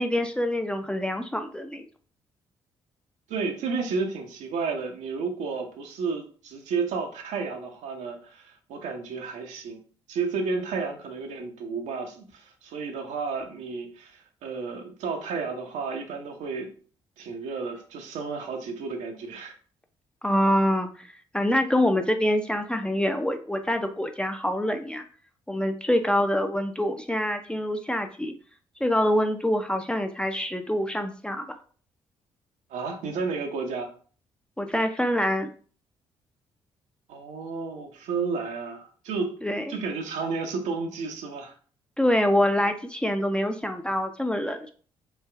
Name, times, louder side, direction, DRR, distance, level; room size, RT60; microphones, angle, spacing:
voice 1, 0.0-1.9 20.2-21.1 21.3-25.0 25.5-28.3 28.8-31.4 34.6-35.5 39.4-39.8 42.0-44.7, left 1 dB, 5° left, 6 dB, 0.4 m, -25 dB
voice 2, 3.3-9.8 10.1-16.7 17.2-19.6 32.7-33.9 37.1-39.4 39.7-41.5, right 4 dB, 65° right, 4 dB, 0.6 m, -32 dB
3.2 x 2.3 x 2.2 m, 0.42 s
hypercardioid pair, 45°, 13 cm